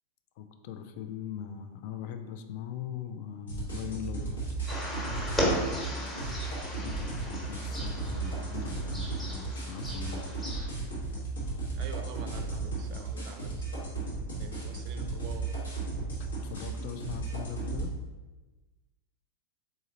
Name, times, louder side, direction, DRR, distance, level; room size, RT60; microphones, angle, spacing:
voice 1, 0.4-4.3 6.8-10.2 16.2-17.9, left 8 dB, 50° left, 8 dB, 0.3 m, -40 dB
sound 1, 3.5-17.9, right 3 dB, 70° left, 1.1 m, -35 dB
sound 2, 4.7-10.7, equal, 15° left, 1.0 m, -35 dB
voice 2, 11.8-14.0 14.3-15.5, right 6 dB, 40° right, 7 dB, 0.4 m, -45 dB
4.0 x 3.6 x 2.8 m, 1.2 s
figure-of-eight pair, 90°, 0 cm